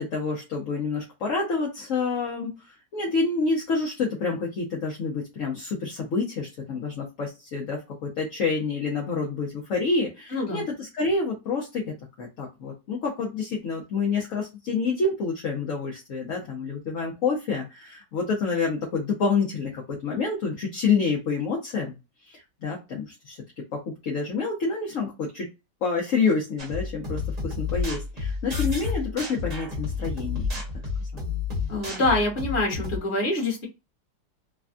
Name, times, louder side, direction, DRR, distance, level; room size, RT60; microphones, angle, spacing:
voice 1, 0.0-22.0 22.3-25.5 25.8-30.5 31.0-31.3, left 4 dB, 60° left, -1 dB, 1.0 m, -28 dB
voice 2, 10.3-10.6 31.7-33.7, left 2 dB, 40° left, -1 dB, 1.5 m, -25 dB
sound 1, 26.6-33.0, left 4 dB, 30° right, 0.9 m, -30 dB
3.3 x 2.2 x 2.5 m, 0.25 s
omnidirectional pair, 1.9 m